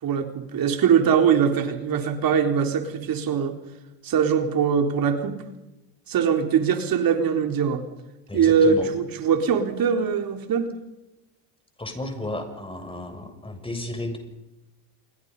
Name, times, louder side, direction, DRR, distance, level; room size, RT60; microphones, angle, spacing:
voice 1, 0.0-3.5 4.0-5.4 6.1-7.8 8.3-10.7, right 7 dB, 45° right, 5 dB, 3.9 m, -22 dB
voice 2, 8.3-8.9 11.8-14.2, left 1 dB, 10° left, 6 dB, 7.0 m, -33 dB
28.0 x 23.5 x 5.6 m, 0.98 s
hypercardioid pair, 90°, 48 cm